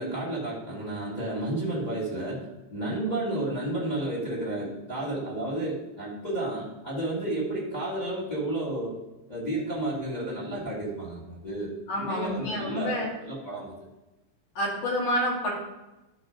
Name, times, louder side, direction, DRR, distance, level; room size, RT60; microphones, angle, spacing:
voice 1, 0.0-2.4 2.7-8.9 9.3-11.7 11.9-13.7, right 1 dB, 15° left, -4 dB, 1.9 m, -31 dB
voice 2, 11.9-13.1 14.6-15.5, left 1 dB, 65° left, -3 dB, 3.7 m, -28 dB
11.5 x 4.0 x 5.1 m, 1.0 s
omnidirectional pair, 3.7 m